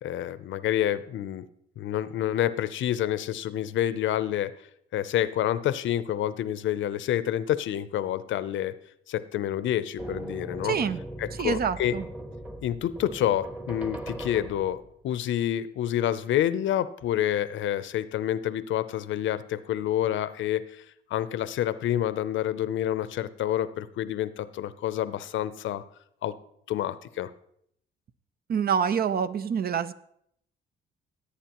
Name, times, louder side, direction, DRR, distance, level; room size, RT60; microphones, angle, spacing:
voice 1, 0.0-1.5 1.8-4.5 4.9-8.7 9.1-10.8 11.2-12.0 12.6-20.8 21.1-25.8 26.2-26.3 26.7-27.3, left 11 dB, 75° left, 15 dB, 0.6 m, -28 dB
sound 1, 10.0-15.0, right 1 dB, 5° right, 1.2 m, -39 dB
voice 2, 10.6-11.0 11.4-12.0 28.5-29.9, right 7 dB, 50° right, 14 dB, 0.6 m, -26 dB
16.5 x 8.4 x 3.0 m, 0.71 s
cardioid pair, 90°, 20 cm